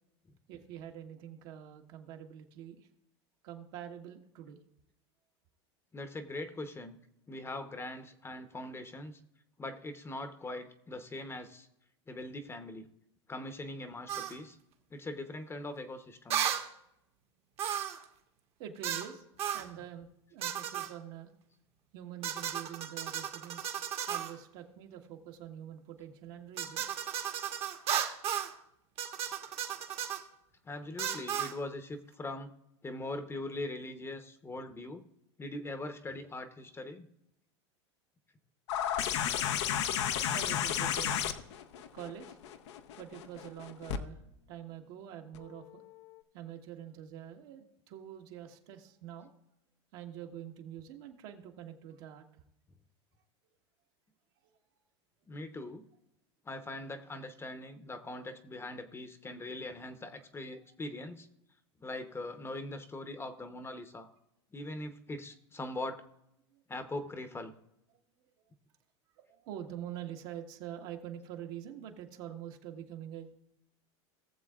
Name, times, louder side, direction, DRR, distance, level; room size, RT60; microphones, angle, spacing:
voice 1, 0.5-2.9 3.4-4.6 18.6-19.3 19.5-21.3 21.9-23.8 24.1-26.9 40.3-41.3 41.9-42.4 43.0-44.2 44.5-45.8 46.3-49.3 49.9-52.3 66.5-66.6 69.2-73.3, right 10 dB, 65° right, 3 dB, 1.4 m, -45 dB
voice 2, 5.9-7.0 7.3-9.2 9.6-11.7 12.1-12.9 13.3-14.6 14.9-16.4 30.6-32.5 32.8-35.0 35.4-37.1 55.3-55.8 56.4-61.3 61.8-64.1 64.5-66.0 66.7-67.5, left 2 dB, 15° left, 9 dB, 0.9 m, -41 dB
sound 1, 14.1-14.4 16.3-16.7 17.6-18.0 18.8-19.1 19.4-19.7 20.4-20.9 22.2-24.3 26.6-28.5 29.0-30.2 31.0-31.5, right 9 dB, 45° right, 1.1 m, -34 dB
sound 2, 38.7-44.0 45.3-45.4, left 9 dB, 75° left, 0.8 m, -33 dB
18.5 x 7.1 x 2.4 m, 0.82 s
hypercardioid pair, 105°, 15 cm